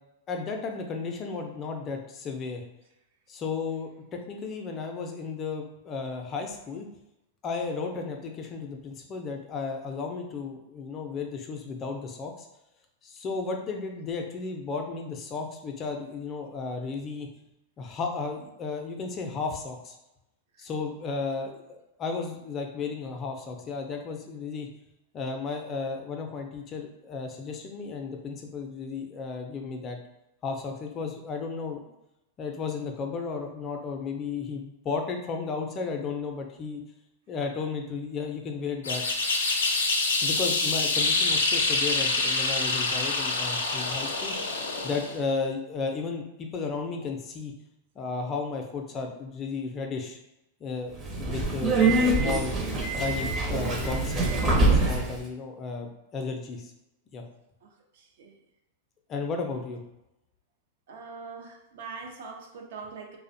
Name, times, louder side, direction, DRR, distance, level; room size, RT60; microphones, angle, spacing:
voice 1, 0.3-2.6 3.3-6.9 7.4-12.3 13.0-17.3 17.8-20.0 20.6-24.7 25.1-30.0 30.4-31.8 32.4-36.8 37.3-39.0 40.2-44.3 44.8-47.5 48.0-50.2 50.6-52.5 53.0-56.7 57.1-57.2 59.1-59.8, left 4 dB, 30° left, 3 dB, 0.4 m, -34 dB
sound 1, 38.8-45.2, left 3 dB, 85° left, 0.4 m, -26 dB
Subway metro underground, 50.9-55.2, right 2 dB, 25° right, 0.6 m, -24 dB
voice 2, 57.6-58.4 59.4-59.6 60.9-63.2, right 5 dB, 65° right, 2 dB, 0.5 m, -43 dB
2.5 x 2.1 x 2.6 m, 0.89 s
hypercardioid pair, 110°, 0 cm